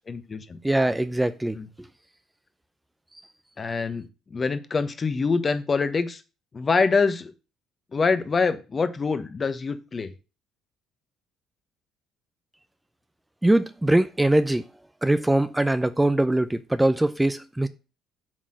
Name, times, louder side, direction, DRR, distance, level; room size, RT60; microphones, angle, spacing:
voice 1, 0.1-0.6 1.5-1.7 3.6-6.2 6.5-7.3 7.9-10.1, left 4 dB, 35° left, 1.1 m, -25 dB
voice 2, 0.6-1.6 13.4-14.6 15.0-17.7, right 1 dB, 10° right, 0.6 m, -22 dB
7.5 x 4.1 x 6.4 m
supercardioid pair, 65°, 0 cm